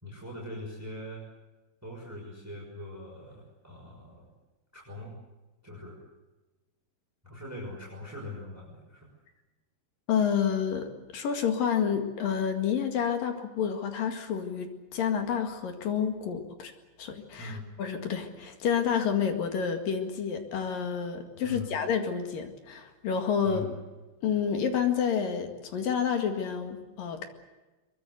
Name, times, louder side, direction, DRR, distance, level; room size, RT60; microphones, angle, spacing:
voice 1, 0.0-1.2 1.8-4.3 4.7-5.2 5.6-6.0 7.2-9.1 17.4-17.7 21.4-21.8 23.4-23.7, left 1 dB, 5° right, -2 dB, 5.8 m, -41 dB
voice 2, 10.1-16.7 17.0-23.7 24.2-27.3, left 7 dB, 55° left, 6 dB, 3.4 m, -29 dB
23.5 x 22.5 x 8.2 m, 1.1 s
omnidirectional pair, 5.0 m